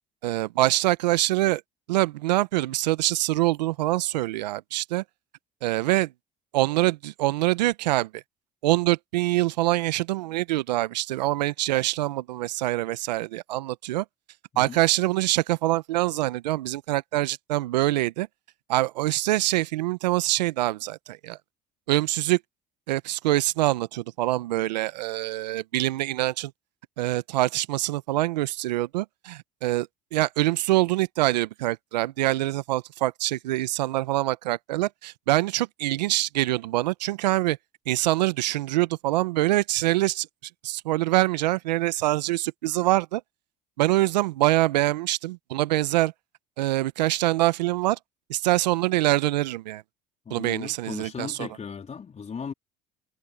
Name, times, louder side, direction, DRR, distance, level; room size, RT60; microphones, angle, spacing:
voice 1, 0.2-1.6 1.9-5.0 5.6-6.1 6.5-8.2 8.6-14.0 14.6-18.3 18.7-21.4 21.9-22.4 22.9-26.5 27.0-37.6 37.9-40.3 40.6-43.2 43.8-46.1 46.6-48.0 48.3-49.8 50.3-51.5, right 17 dB, 85° right, 1.0 m, -25 dB
voice 2, 50.3-52.5, left 6 dB, 35° left, 3.8 m, -37 dB
hypercardioid pair, 70°, 21 cm